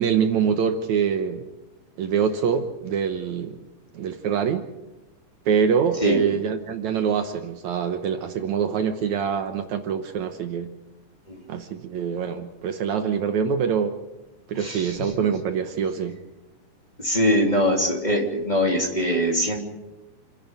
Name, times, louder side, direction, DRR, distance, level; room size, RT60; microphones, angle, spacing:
voice 1, 0.0-1.4 2.0-3.6 3.9-4.7 5.5-10.7 11.5-14.0 14.5-16.2, right 7 dB, 70° right, 7 dB, 2.2 m, -25 dB
voice 2, 14.6-14.9 17.0-19.6, equal, 15° left, -1 dB, 3.0 m, -22 dB
29.0 x 10.5 x 9.2 m, 1.0 s
omnidirectional pair, 3.7 m